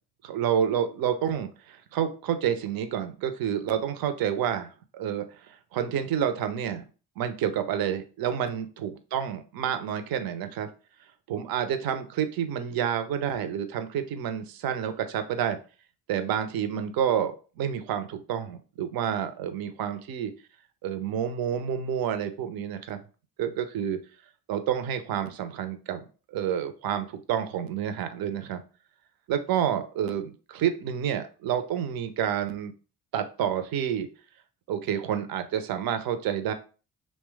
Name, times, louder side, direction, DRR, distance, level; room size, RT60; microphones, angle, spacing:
voice 1, 0.2-6.8 7.2-10.7 11.3-15.6 16.1-20.3 20.8-23.0 23.4-24.0 24.5-26.0 26.3-28.6 29.3-32.7 33.1-34.1 34.7-36.5, right 9 dB, 50° right, 9 dB, 0.6 m, -29 dB
2.9 x 2.1 x 3.3 m, 0.36 s
hypercardioid pair, 40°, 47 cm